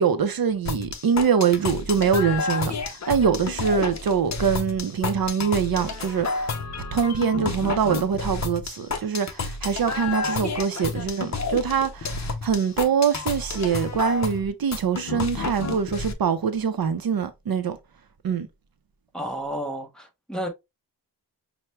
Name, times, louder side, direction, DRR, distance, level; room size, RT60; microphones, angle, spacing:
voice 1, 0.0-6.5 6.9-17.8 18.2-18.5, right 7 dB, 60° right, 0.6 m, -24 dB
sound 1, 0.6-16.1, left 4 dB, 45° left, 0.6 m, -30 dB
voice 2, 19.1-20.5, equal, ahead, 0.7 m, -31 dB
5.7 x 2.1 x 3.1 m
wide cardioid pair, 160°, 40 cm